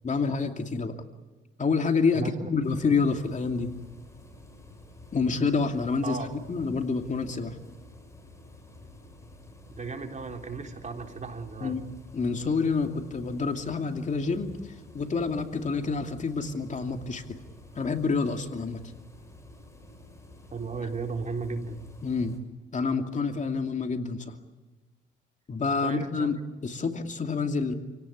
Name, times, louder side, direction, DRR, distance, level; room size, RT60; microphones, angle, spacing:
voice 1, 0.0-1.0 1.6-3.7 5.1-7.6 11.6-11.8 12.1-14.5 14.9-17.4 17.7-18.8 22.0-22.4 22.7-24.4 25.5-27.8, left 4 dB, 40° left, 5 dB, 2.6 m, -28 dB
sound 1, 2.6-22.4, left 2 dB, 15° left, 6.9 m, -50 dB
voice 2, 9.8-11.8 20.5-21.8 25.8-26.3, right 4 dB, 35° right, 4 dB, 3.7 m, -35 dB
28.5 x 18.0 x 9.6 m, 1.2 s
cardioid pair, 90°, 20 cm